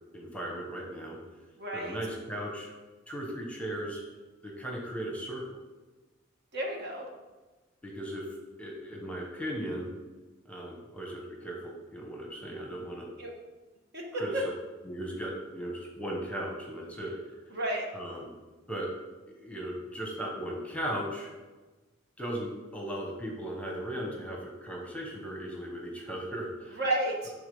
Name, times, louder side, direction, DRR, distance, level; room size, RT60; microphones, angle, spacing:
voice 1, 0.1-1.2 1.7-2.7 3.1-4.0 4.4-5.6 7.8-8.3 8.6-9.9 10.4-13.1 14.1-14.4 14.8-17.4 17.9-18.3 18.7-18.9 19.3-21.3 22.2-26.8, right 1 dB, 5° left, -1 dB, 1.1 m, -37 dB
voice 2, 1.6-2.0 6.5-7.0 13.2-13.3 13.9-14.2 17.5-17.9 26.8-27.3, right 1 dB, 55° right, -1 dB, 1.6 m, -31 dB
9.7 x 3.9 x 5.4 m, 1.2 s
head